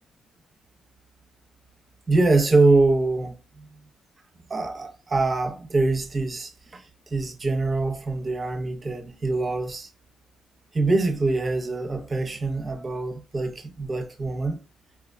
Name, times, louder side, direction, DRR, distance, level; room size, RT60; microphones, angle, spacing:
voice 1, 2.1-3.4 4.5-6.8 7.1-9.9 10.7-14.6, right 3 dB, 30° right, 0.7 m, -24 dB
4.5 x 2.4 x 2.2 m
cardioid pair, 90°, 0 cm